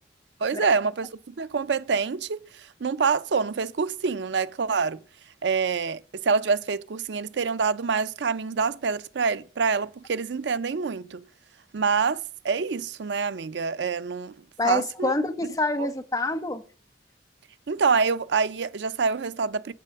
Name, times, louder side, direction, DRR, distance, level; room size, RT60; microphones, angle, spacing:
voice 1, 0.4-1.1 1.4-2.4 2.8-5.0 5.4-11.2 11.7-14.3 14.6-15.1 15.8-15.9 17.7-19.7, right 5 dB, 75° right, 0.5 m, -26 dB
voice 2, 14.6-16.6, left 2 dB, 20° left, 0.9 m, -26 dB
8.3 x 7.3 x 6.6 m
head